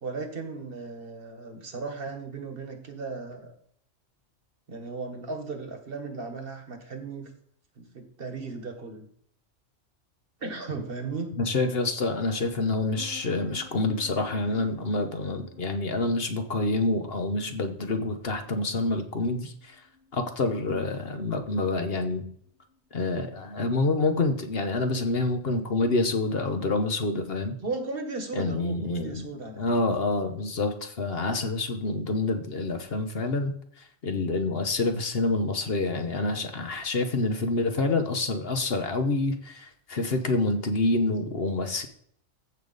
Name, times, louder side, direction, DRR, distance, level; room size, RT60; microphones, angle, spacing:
voice 1, 0.0-3.5 4.7-7.3 7.8-9.1 10.4-11.3 20.7-20.9 27.6-29.7, right 3 dB, 50° right, 6 dB, 1.4 m, -36 dB
voice 2, 11.4-19.8 20.1-22.2 22.9-27.5 28.3-29.2 29.6-41.9, left 2 dB, 55° left, 6 dB, 1.2 m, -27 dB
sound 1, 12.9-24.4, left 4 dB, 75° left, 3.2 m, -53 dB
14.5 x 5.2 x 4.0 m, 0.63 s
omnidirectional pair, 1.2 m